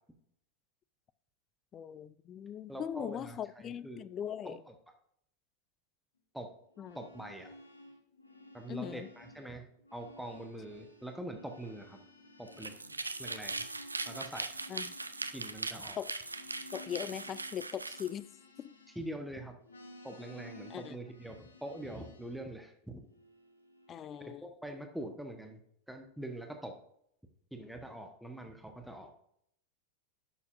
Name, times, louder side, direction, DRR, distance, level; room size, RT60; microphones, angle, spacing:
voice 1, 1.7-4.6 6.8-7.0 8.7-9.1 14.7-14.9 16.0-16.1 16.7-18.3 18.6-18.7 20.7-21.0 23.9-24.4, left 9 dB, 30° left, 0.4 m, -40 dB
voice 2, 2.7-4.1 4.4-4.7 6.3-6.5 6.9-7.5 8.5-9.6 9.9-12.0 12.4-12.8 13.2-13.7 14.1-14.5 15.3-16.0 18.9-19.6 20.0-23.1 24.4-25.6 25.9-26.7 27.5-29.1, right 1 dB, ahead, 1.1 m, -44 dB
sound 1, 6.7-9.5 9.8-19.3 19.6-22.4 23.1-24.3, left 1 dB, 80° left, 1.3 m, -55 dB
sound 2, 12.5-18.1, right 3 dB, 90° right, 0.5 m, -40 dB
11.0 x 6.9 x 2.5 m
figure-of-eight pair, 90°, 0 cm